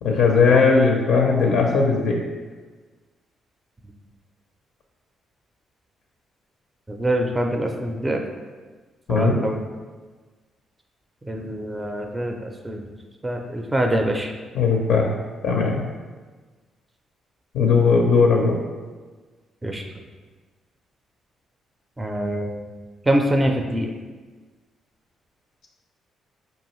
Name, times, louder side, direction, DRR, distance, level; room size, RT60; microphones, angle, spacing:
voice 1, 0.0-2.2 9.1-9.4 14.5-15.1 15.4-15.8 17.5-18.6, left 4 dB, 85° left, 0 dB, 0.4 m, -18 dB
voice 2, 6.9-8.2 9.1-9.6 11.2-12.8 13.2-14.3 19.6-19.8 22.0-22.5 23.1-23.9, right 1 dB, 15° right, 3 dB, 0.4 m, -24 dB
4.8 x 2.7 x 3.0 m, 1.4 s
cardioid pair, 90°, 0 cm